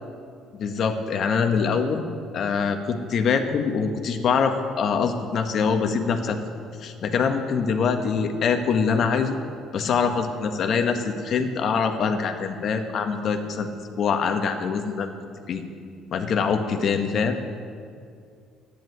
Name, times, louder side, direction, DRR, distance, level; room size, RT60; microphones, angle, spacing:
voice 1, 0.5-2.0 2.3-6.4 6.8-9.4 9.7-13.7 14.0-15.1 15.5-15.6 16.1-17.4, left 5 dB, 50° left, 6 dB, 1.5 m, -24 dB
13.0 x 10.5 x 9.4 m, 2.3 s
cardioid pair, 120°, 0 cm